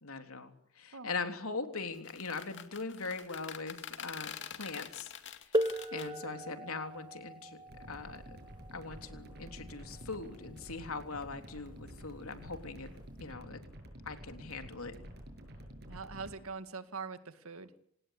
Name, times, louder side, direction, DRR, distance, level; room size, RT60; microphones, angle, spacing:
voice 1, 0.0-5.1 5.9-7.6 7.9-8.4 8.7-12.9 13.2-13.6 14.0-14.9, left 4 dB, 85° left, 6 dB, 3.4 m, -41 dB
sound 1, 1.9-6.1, left 8 dB, 55° left, 2.5 m, -45 dB
sound 2, 5.5-11.0 12.0-12.1 13.0-13.2, equal, 20° right, 1.0 m, -38 dB
sound 3, 7.7-16.4, equal, 50° right, 7.2 m, -50 dB
voice 2, 15.9-17.7, right 5 dB, 85° right, 11 dB, 1.9 m, -43 dB
28.0 x 18.5 x 8.4 m, 0.68 s
head